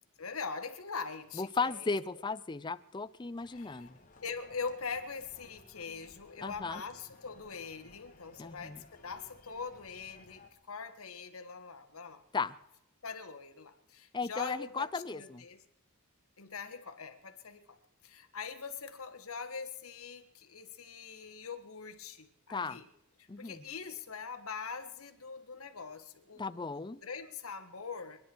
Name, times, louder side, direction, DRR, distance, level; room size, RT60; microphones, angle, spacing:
voice 1, 0.2-1.9 3.5-3.9 4.2-12.2 13.0-15.6 16.4-17.8 18.0-22.9 23.2-28.2, left 5 dB, 80° left, 8 dB, 1.6 m, -43 dB
voice 2, 1.4-3.9 6.4-6.8 8.4-8.8 12.3-12.5 14.1-15.4 22.5-22.8 23.3-23.6 26.4-27.0, left 4 dB, 20° left, 15 dB, 0.5 m, -36 dB
sound 1, 3.1-10.5, left 3 dB, 40° left, 1.7 m, -59 dB
28.5 x 10.5 x 4.6 m, 0.82 s
head